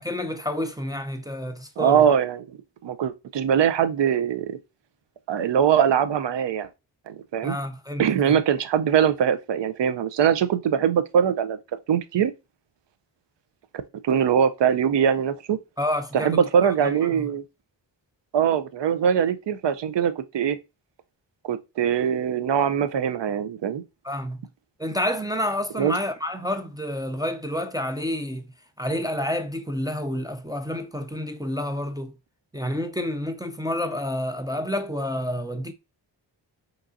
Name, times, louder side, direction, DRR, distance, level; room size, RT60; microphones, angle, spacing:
voice 1, 0.0-2.0 7.4-8.4 15.8-17.3 24.0-24.4 24.8-28.5 28.8-32.1 32.5-35.7, left 1 dB, 10° right, 0.4 m, -29 dB
voice 2, 1.8-2.4 2.8-4.6 5.3-6.7 7.1-7.6 8.0-11.6 11.9-12.3 14.0-15.6 16.1-17.4 18.3-20.6 21.4-23.8 25.8-25.9, right 8 dB, 70° right, 0.6 m, -22 dB
5.1 x 3.0 x 2.5 m
wide cardioid pair, 105°, 45 cm